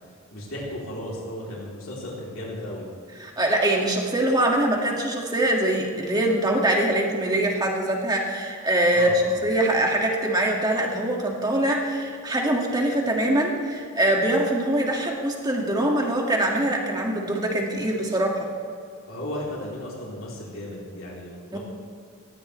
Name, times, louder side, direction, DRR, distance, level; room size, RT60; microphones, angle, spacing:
voice 1, 0.3-2.9 8.9-9.4 19.0-21.6, left 1 dB, 70° left, -5 dB, 3.6 m, -35 dB
voice 2, 3.2-9.1 9.4-18.5 21.5-21.6, right 1 dB, 20° right, -1 dB, 2.3 m, -23 dB
18.5 x 16.0 x 3.4 m, 2.3 s
head